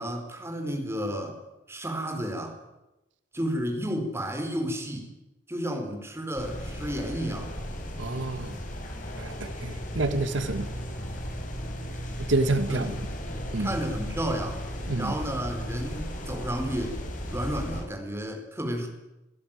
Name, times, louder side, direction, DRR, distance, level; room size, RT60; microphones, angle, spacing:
voice 1, 0.0-1.4 1.7-2.6 3.3-5.1 5.5-7.5 12.7-12.8 13.6-14.6 14.9-17.0 17.3-18.9, equal, 15° right, 3 dB, 4.7 m, -32 dB
sound 1, 6.4-17.8, equal, 45° left, 6.0 m, -35 dB
voice 2, 8.0-8.6 9.2-10.7 12.2-12.9 13.5-13.7 14.9-15.1, right 2 dB, 80° right, 10 dB, 1.6 m, -28 dB
29.0 x 16.5 x 9.2 m, 0.97 s
head